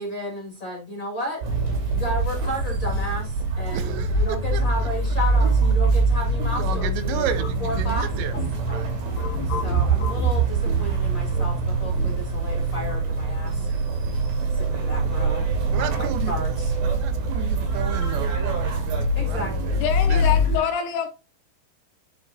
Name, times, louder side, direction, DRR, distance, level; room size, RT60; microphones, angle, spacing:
voice 1, 0.0-1.5 1.9-7.3 7.6-8.4 9.4-13.8 14.5-16.7 19.1-19.8, left 1 dB, 50° left, 1.4 m, -33 dB
sound 1, 1.4-20.6, right 2 dB, 60° right, 4.0 m, -24 dB
voice 2, 3.7-4.9 6.5-8.3 8.6-9.0 15.7-16.3 16.8-20.3, right 10 dB, 85° right, 3.1 m, -33 dB
sound 2, 7.0-12.4, right 6 dB, 70° left, 1.7 m, -28 dB
voice 3, 19.8-21.1, left 8 dB, 85° left, 2.4 m, -25 dB
11.0 x 4.7 x 2.6 m
omnidirectional pair, 5.1 m